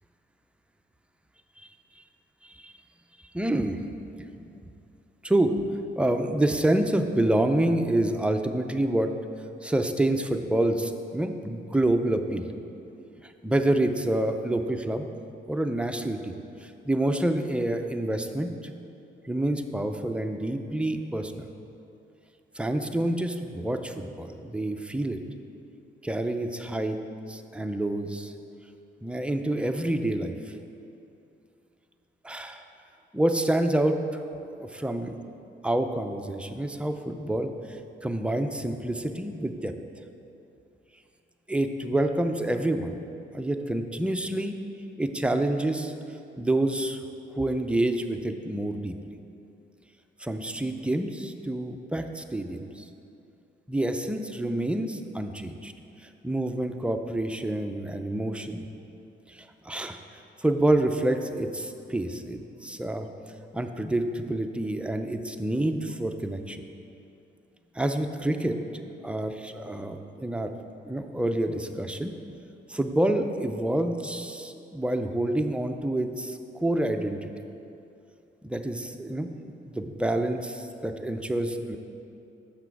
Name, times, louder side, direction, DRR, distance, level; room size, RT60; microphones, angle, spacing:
voice 1, 2.4-2.7 3.3-3.9 4.2-4.3 5.2-5.5 6.0-9.1 9.6-12.4 13.2-15.1 15.5-16.3 16.6-18.5 19.2-21.4 22.6-25.2 26.0-27.0 27.3-28.3 29.0-30.3 32.2-32.6 33.1-34.0 34.4-35.1 35.6-39.7 41.5-42.9 43.3-44.6 45.0-45.9 46.4-47.0 47.4-48.9 50.2-52.8 53.7-55.7 56.2-58.7 59.3-60.0 60.4-63.1 63.5-66.6 67.8-68.6 69.0-70.5 70.9-72.1 72.7-77.3 78.4-81.8, right 1 dB, 5° right, 6 dB, 0.4 m, -27 dB
6.7 x 5.9 x 4.7 m, 2.7 s
cardioid pair, 90°, 20 cm